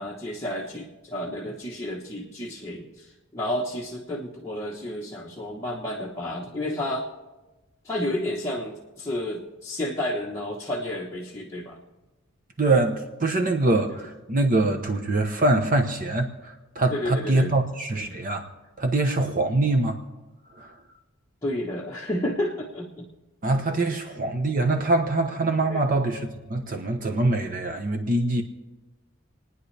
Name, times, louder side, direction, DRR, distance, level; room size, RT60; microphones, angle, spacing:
voice 1, 0.0-7.1 7.8-11.8 16.9-17.5 21.4-23.1 25.7-25.8, left 1 dB, 15° left, -5 dB, 1.3 m, -31 dB
voice 2, 12.6-18.5 18.8-20.0 20.5-20.8 23.4-28.4, right 2 dB, 40° right, 5 dB, 1.0 m, -24 dB
28.0 x 9.6 x 3.4 m, 1.1 s
head